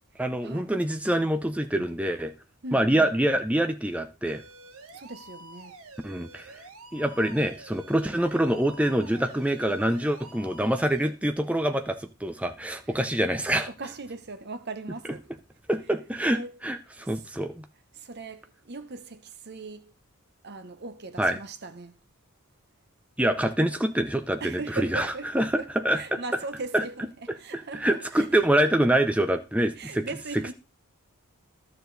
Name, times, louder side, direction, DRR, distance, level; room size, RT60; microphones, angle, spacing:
voice 1, 0.2-2.3 2.7-4.4 6.0-6.5 6.9-13.7 15.7-17.6 21.2-21.4 23.2-25.1 25.3-25.5 25.8-26.2 26.7-26.8 27.5-30.1, right 1 dB, 5° right, 0.7 m, -25 dB
voice 2, 2.6-3.1 4.9-5.8 12.9-13.0 13.7-15.3 16.3-16.6 17.9-19.9 20.4-21.9 24.4-25.7 25.9-28.4 29.8-30.5, right 3 dB, 50° right, 1.0 m, -39 dB
sound 1, 4.2-11.1, right 2 dB, 70° right, 1.7 m, -48 dB
12.5 x 7.0 x 4.0 m
head